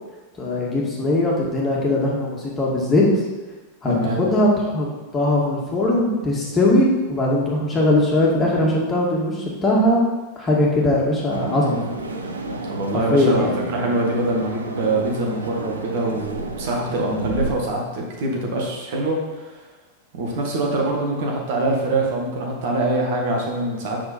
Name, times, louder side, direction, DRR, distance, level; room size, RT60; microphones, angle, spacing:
voice 1, 0.4-3.0 3.8-4.9 5.1-10.0 10.4-11.8 13.1-13.5, left 1 dB, 20° left, -4 dB, 2.3 m, -20 dB
voice 2, 3.9-4.2 12.6-19.5 20.1-24.0, right 2 dB, 50° right, -1 dB, 1.7 m, -24 dB
sound 1, 11.3-17.5, right 2 dB, 75° right, 0.8 m, -31 dB
7.8 x 6.1 x 4.3 m, 1.2 s
figure-of-eight pair, 90°, 0 cm